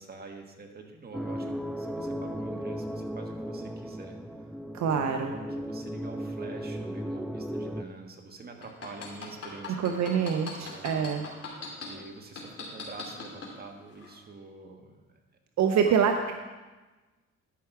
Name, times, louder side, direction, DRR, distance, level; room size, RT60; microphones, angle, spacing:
voice 1, 0.0-4.5 5.3-11.1 11.8-15.2 15.8-15.9, right 3 dB, 30° right, 2 dB, 1.5 m, -46 dB
sound 1, 1.1-7.8, equal, ahead, 0.4 m, -36 dB
voice 2, 4.7-5.3 9.8-11.3 15.6-16.3, right 7 dB, 65° right, 5 dB, 0.7 m, -25 dB
sound 2, 8.6-11.9 12.4-13.5 14.0-14.1, left 6 dB, 55° left, 2.7 m, -39 dB
12.0 x 5.8 x 4.7 m, 1.2 s
cardioid pair, 90°, 30 cm